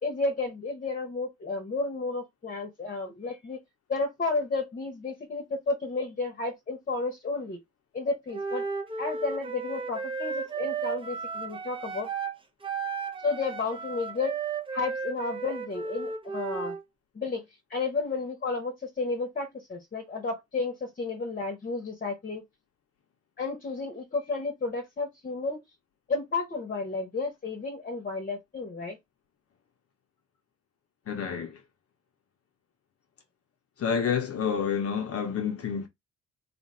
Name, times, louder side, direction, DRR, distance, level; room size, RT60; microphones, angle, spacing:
voice 1, 0.0-3.6 3.9-7.6 7.9-8.6 9.0-12.1 13.2-14.4 14.7-16.8 17.1-22.4 23.4-25.6 26.1-29.0, left 3 dB, 30° left, 1.0 m, -32 dB
Wind instrument woodwind instrument, 8.3-12.4 12.6-16.8, right 5 dB, 15° right, 0.7 m, -34 dB
voice 2, 31.1-31.6 33.8-35.9, left 7 dB, 50° left, 0.8 m, -29 dB
2.8 x 2.5 x 4.1 m
cardioid pair, 90°, 30 cm